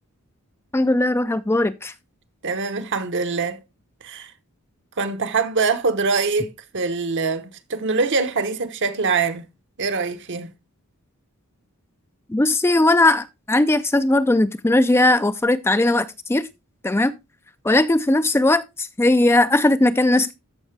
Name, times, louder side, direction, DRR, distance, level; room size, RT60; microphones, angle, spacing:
voice 1, 0.7-1.9 12.3-16.5 16.8-17.1 17.6-20.3, left 2 dB, 10° left, 0.4 m, -18 dB
voice 2, 2.4-3.6 4.0-4.3 5.0-9.5 9.8-10.5, right 4 dB, 55° right, 1.0 m, -23 dB
13.5 x 5.5 x 3.3 m
head